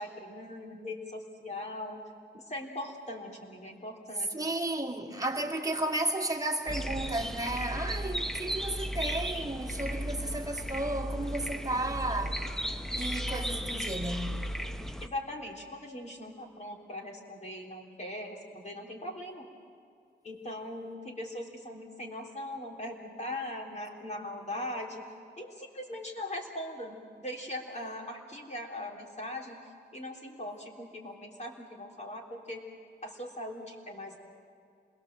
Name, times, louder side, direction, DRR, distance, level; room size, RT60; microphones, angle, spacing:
voice 1, 0.0-2.0 2.3-4.4 15.0-19.5 20.2-25.0 25.4-29.6 29.9-32.6 33.0-34.2, left 1 dB, 35° left, 3.6 m, -40 dB
voice 2, 4.2-12.5 12.9-14.4, right 1 dB, 20° right, 2.3 m, -33 dB
sound 1, 6.7-15.1, equal, ahead, 0.8 m, -35 dB
27.5 x 21.0 x 7.7 m
wide cardioid pair, 125°, 19 cm